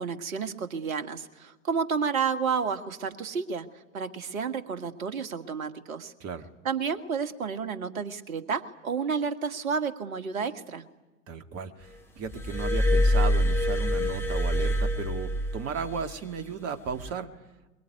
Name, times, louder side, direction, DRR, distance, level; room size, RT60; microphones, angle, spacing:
voice 1, 0.0-3.7 3.9-6.1 6.6-10.8, right 6 dB, 65° right, 8 dB, 2.0 m, -31 dB
voice 2, 11.3-17.3, right 6 dB, 30° right, 8 dB, 2.2 m, -35 dB
Glass, 12.3-15.9 16.9-17.1, left 1 dB, 5° left, 4.7 m, -25 dB
23.0 x 22.0 x 9.2 m, 1.1 s
figure-of-eight pair, 95°, 44 cm